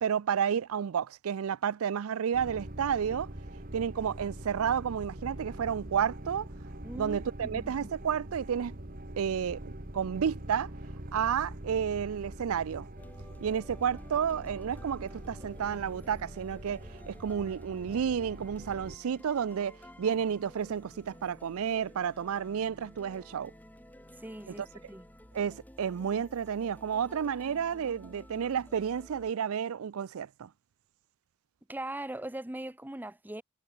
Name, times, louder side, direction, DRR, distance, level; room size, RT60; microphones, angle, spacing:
voice 1, 0.0-3.3 3.7-6.5 7.0-8.8 9.2-10.7 11.1-12.9 13.4-23.5 24.5-24.6 25.3-30.5, right 7 dB, 75° right, 0.4 m, -31 dB
sound 1, 2.3-19.0, right 1 dB, 40° right, 2.2 m, -44 dB
voice 2, 6.8-7.2 7.5-7.9 24.2-25.1 31.7-33.4, right 1 dB, 10° right, 0.7 m, -40 dB
sound 2, 13.0-29.3, equal, 5° left, 3.6 m, -53 dB
head